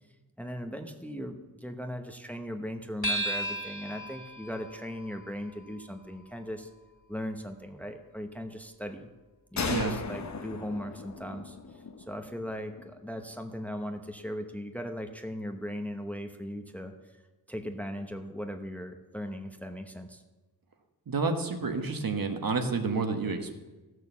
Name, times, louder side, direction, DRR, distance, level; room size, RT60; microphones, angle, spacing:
voice 1, 0.4-6.7 7.1-9.1 9.5-17.2 17.5-20.2, equal, 5° left, 5 dB, 0.9 m, -38 dB
sound 1, 3.0-7.8, right 1 dB, 25° left, 2.7 m, -37 dB
sound 2, 9.6-13.1, left 4 dB, 45° left, 0.9 m, -37 dB
voice 2, 21.1-23.6, right 4 dB, 60° right, 5 dB, 1.3 m, -29 dB
15.0 x 6.5 x 7.0 m, 1.2 s
wide cardioid pair, 115°, 38 cm